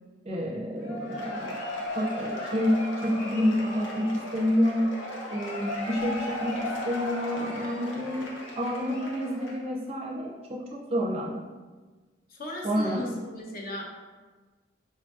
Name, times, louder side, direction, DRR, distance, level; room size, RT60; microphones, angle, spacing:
voice 1, 0.2-1.6 1.9-11.4 12.6-13.2, equal, 35° right, -3 dB, 0.4 m, -29 dB
Cheering / Applause / Crowd, 0.8-9.7, left 1 dB, 85° left, 0.7 m, -36 dB
voice 2, 12.3-13.8, left 1 dB, 50° left, -2 dB, 0.6 m, -36 dB
4.4 x 2.5 x 2.4 m, 1.3 s
head